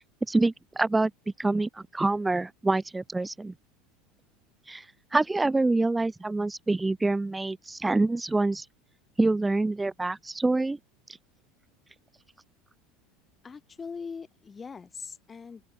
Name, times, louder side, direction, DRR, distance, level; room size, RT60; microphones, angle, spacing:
voice 1, 0.3-1.1 1.4-3.5 4.7-4.8 5.1-8.6 9.2-10.8, right 2 dB, 10° right, 1.7 m, -26 dB
voice 2, 13.4-15.6, left 5 dB, 20° left, 4.5 m, -41 dB
open air
supercardioid pair, 110°, 0 cm